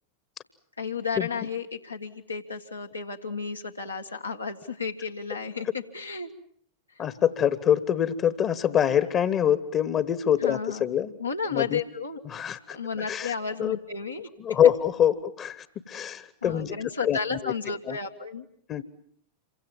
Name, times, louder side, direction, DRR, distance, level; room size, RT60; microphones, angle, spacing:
voice 1, 0.8-6.3 10.4-10.9 11.2-12.2 12.7-14.3 16.4-18.5, left 5 dB, 85° left, 1 dB, 1.8 m, -33 dB
voice 2, 7.0-11.2 11.5-11.8 12.2-12.8 13.1-13.3 13.6-13.8 14.4-17.5 17.9-18.0 18.7-18.8, left 9 dB, 30° left, 15 dB, 1.3 m, -25 dB
27.5 x 24.5 x 7.4 m, 0.62 s
figure-of-eight pair, 90°, 0 cm